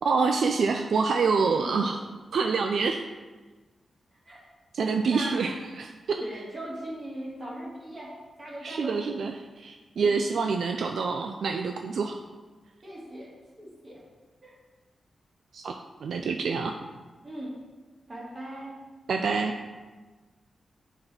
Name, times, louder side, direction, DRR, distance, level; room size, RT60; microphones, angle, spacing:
voice 1, 0.0-2.0 2.3-3.0 4.7-6.2 8.6-12.2 15.5-15.7 16.0-16.8 19.1-19.6, right 4 dB, 75° right, 4 dB, 0.4 m, -26 dB
voice 2, 1.3-1.9 4.3-4.4 4.8-5.5 6.2-8.1 8.4-8.9 10.0-10.3 12.8-13.3 13.6-14.0 14.4-14.5 17.2-17.5 18.1-18.8, right 1 dB, 30° right, -5 dB, 2.6 m, -39 dB
6.6 x 6.0 x 4.3 m, 1.3 s
wide cardioid pair, 120°, 0 cm